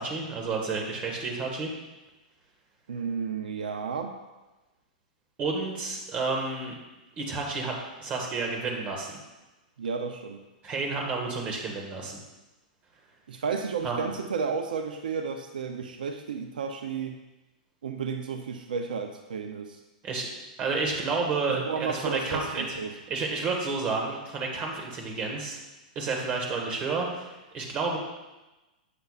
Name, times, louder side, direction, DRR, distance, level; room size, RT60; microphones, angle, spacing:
voice 1, 0.0-1.7 5.4-6.8 7.2-9.2 10.6-12.2 13.8-14.0 20.0-20.3 20.6-25.6 25.9-28.0, right 4 dB, 30° right, 0 dB, 1.5 m, -30 dB
voice 2, 2.9-4.1 9.8-10.4 13.3-17.1 17.8-19.8 21.5-22.9, right 5 dB, 85° right, 5 dB, 0.6 m, -32 dB
7.9 x 6.7 x 2.4 m, 1.1 s
hypercardioid pair, 135°, 5 cm